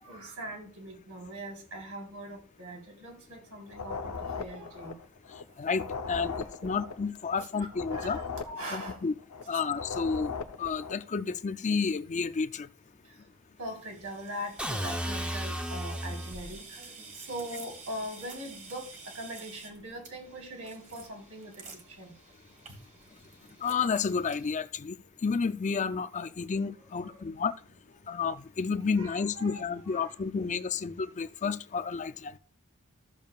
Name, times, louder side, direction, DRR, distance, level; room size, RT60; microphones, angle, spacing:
voice 1, 0.0-5.0 6.0-6.8 7.9-9.0 13.6-16.8 17.1-18.9 19.1-21.5 22.0-22.1 26.8-27.4 28.9-30.2, equal, 75° right, 3.8 m, -42 dB
sound 1, 3.7-5.4 5.7-9.4 9.7-11.1, left 5 dB, 75° left, 0.8 m, -39 dB
voice 2, 5.6-8.2 8.7-9.1 9.5-12.7 23.6-25.0 25.2-27.5 28.1-32.4, left 5 dB, 35° left, 0.4 m, -31 dB
sound 2, 13.6-24.5, right 4 dB, 35° right, 1.7 m, -50 dB
sound 3, 14.6-16.5, equal, 5° right, 0.8 m, -34 dB
14.0 x 7.2 x 2.4 m
head